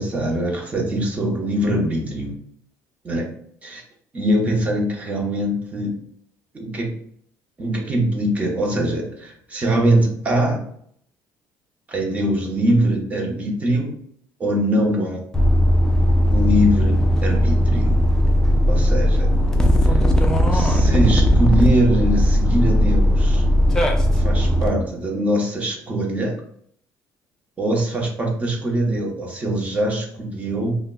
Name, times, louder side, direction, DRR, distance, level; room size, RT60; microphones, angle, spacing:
voice 1, 0.0-2.4 3.0-3.3 3.6-3.8 4.1-6.0 6.5-7.0 7.6-10.6 11.9-13.9 14.4-15.2 16.3-18.0 18.7-19.3 19.8-20.0 20.5-23.4 24.2-26.4 27.6-30.8, right 1 dB, 25° right, 0 dB, 0.9 m, -22 dB
sound 1, 15.3-24.7, equal, 10° left, 0.4 m, -17 dB
5.2 x 2.1 x 2.2 m, 0.65 s
cardioid pair, 130°, 6 cm